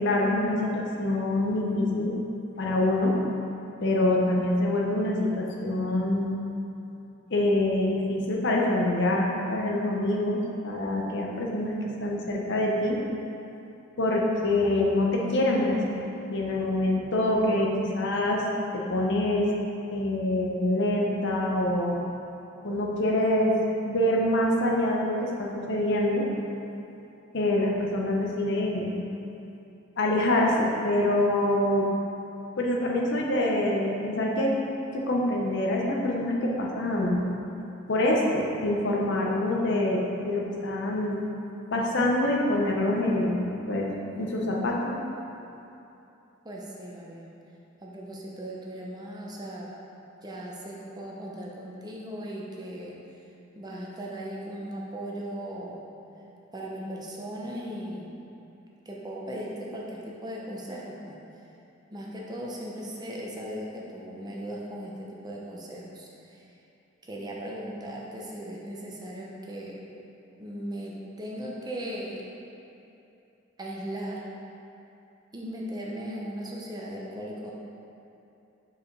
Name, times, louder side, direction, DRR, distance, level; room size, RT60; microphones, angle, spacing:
voice 1, 0.0-2.1 2.6-3.1 3.8-6.3 7.3-13.0 14.0-16.0 16.3-18.4 18.7-19.5 19.9-22.0 22.6-23.6 23.8-26.2 27.3-28.9 30.0-31.9 32.6-34.6 34.9-37.2 37.9-41.2 41.7-43.9 44.2-44.9, left 1 dB, 60° left, -2 dB, 0.8 m, -25 dB
voice 2, 46.4-47.3 47.8-49.7 50.2-53.0 53.5-55.9 56.5-58.1 58.8-61.2 61.9-66.4 67.0-69.8 70.4-72.3 73.6-74.2 75.3-77.5, equal, 20° right, -3 dB, 0.8 m, -37 dB
5.0 x 5.0 x 5.3 m, 2.9 s
head